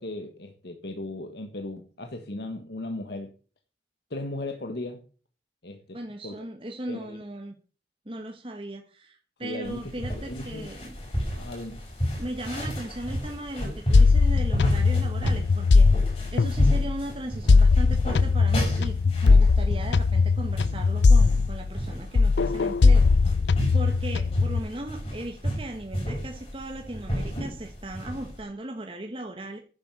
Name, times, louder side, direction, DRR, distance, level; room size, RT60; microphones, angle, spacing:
voice 1, 0.0-3.3 4.1-5.0 5.6-6.0 6.2-6.4 6.9-7.2 9.4-9.9 10.3-10.7 11.4-11.8, left 2 dB, 65° left, 5 dB, 1.4 m, -36 dB
voice 2, 5.9-7.5 8.0-10.9 12.2-15.9 16.3-18.9 19.2-23.1 23.7-29.6, right 1 dB, 30° right, 3 dB, 1.3 m, -37 dB
sound 1, 9.6-28.4, equal, 35° left, 5.8 m, -33 dB
sound 2, 13.9-17.0 17.5-21.9 22.2-24.6, left 4 dB, 85° left, 0.5 m, -20 dB
10.5 x 7.5 x 6.9 m, 0.38 s
head